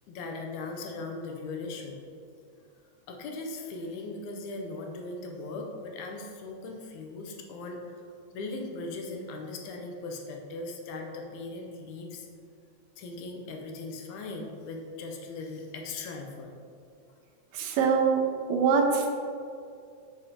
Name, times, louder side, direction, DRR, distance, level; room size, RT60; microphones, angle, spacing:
voice 1, 0.1-2.0 3.1-8.0 8.3-12.3 13.0-16.5, left 3 dB, 85° left, 2 dB, 2.0 m, -39 dB
voice 2, 17.5-18.2 18.5-19.1, right 5 dB, 80° right, 3 dB, 1.7 m, -23 dB
7.1 x 5.0 x 2.8 m, 2.4 s
omnidirectional pair, 3.4 m